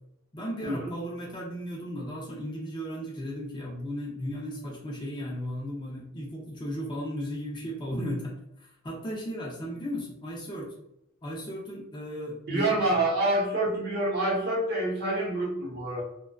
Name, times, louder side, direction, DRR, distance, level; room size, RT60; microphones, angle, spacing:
voice 1, 0.3-10.7 11.2-12.8, equal, 20° left, -2 dB, 0.4 m, -35 dB
voice 2, 12.5-16.0, right 2 dB, 50° right, -3 dB, 0.8 m, -27 dB
2.5 x 2.1 x 2.2 m, 0.80 s
head